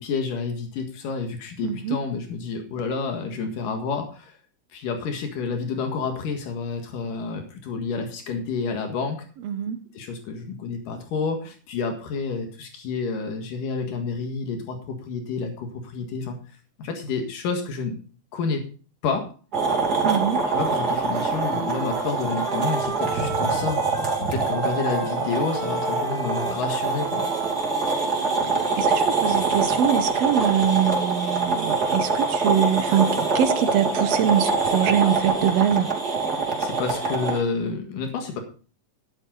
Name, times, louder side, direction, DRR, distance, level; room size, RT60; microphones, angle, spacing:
voice 1, 0.0-4.4 4.7-9.2 9.9-16.4 16.8-18.0 18.3-18.6 19.0-19.3 20.5-23.8 24.3-27.2 36.3-38.4, left 4 dB, 85° left, 3.4 m, -29 dB
voice 2, 1.6-2.0 9.4-9.8 20.0-20.4 28.8-35.9, right 9 dB, 70° right, 1.6 m, -23 dB
sound 1, 19.5-37.4, right 4 dB, 30° right, 3.1 m, -24 dB
Wind instrument woodwind instrument, 20.6-24.2 24.5-28.8, right 2 dB, 15° right, 4.3 m, -36 dB
13.0 x 11.0 x 3.9 m
omnidirectional pair, 3.7 m